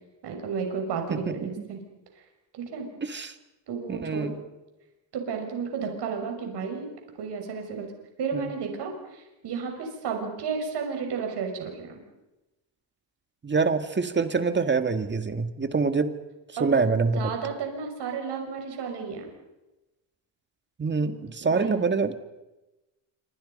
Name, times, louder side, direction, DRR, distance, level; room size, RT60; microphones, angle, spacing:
voice 1, 0.2-1.8 2.5-2.9 3.7-4.3 5.1-6.9 7.2-7.9 8.2-12.0 16.6-16.8 17.1-19.3 21.0-21.1 21.4-21.8, right 5 dB, 60° right, 3 dB, 6.3 m, -32 dB
voice 2, 1.1-1.5 3.0-3.4 3.9-4.4 8.3-8.5 13.4-16.1 16.6-17.3 20.8-22.1, right 4 dB, 25° right, 9 dB, 1.9 m, -25 dB
27.5 x 25.0 x 5.5 m, 1.0 s
cardioid pair, 115°, 45 cm